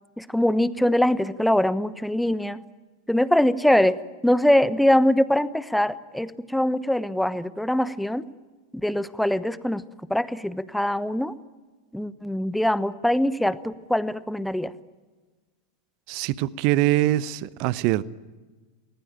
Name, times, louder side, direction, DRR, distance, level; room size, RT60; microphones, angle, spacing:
voice 1, 0.2-2.6 3.1-8.3 8.8-9.8 10.1-11.3 11.9-14.7, left 1 dB, ahead, 16 dB, 1.1 m, -23 dB
voice 2, 16.1-18.0, right 15 dB, 45° right, 19 dB, 0.8 m, -23 dB
29.5 x 20.5 x 8.9 m, 1.3 s
figure-of-eight pair, 90°, 0 cm